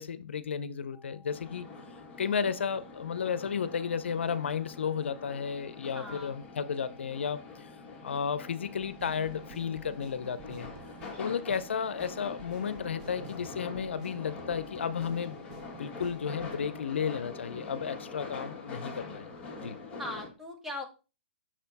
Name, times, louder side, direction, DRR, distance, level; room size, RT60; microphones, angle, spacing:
voice 1, 0.0-1.7 2.2-7.7 8.0-10.7 11.2-15.3 15.8-19.3 19.6-19.8, left 7 dB, 85° left, 0.5 m, -33 dB
sound 1, 0.9-16.3, left 6 dB, 45° left, 1.3 m, -60 dB
sound 2, 1.3-20.3, left 4 dB, 15° left, 1.7 m, -45 dB
voice 2, 2.2-2.5 5.9-6.4 20.0-20.8, left 1 dB, 5° right, 1.2 m, -40 dB
sound 3, 8.8-16.6, right 9 dB, 40° right, 0.5 m, -52 dB
6.0 x 4.3 x 4.0 m
hypercardioid pair, 150°, 6 cm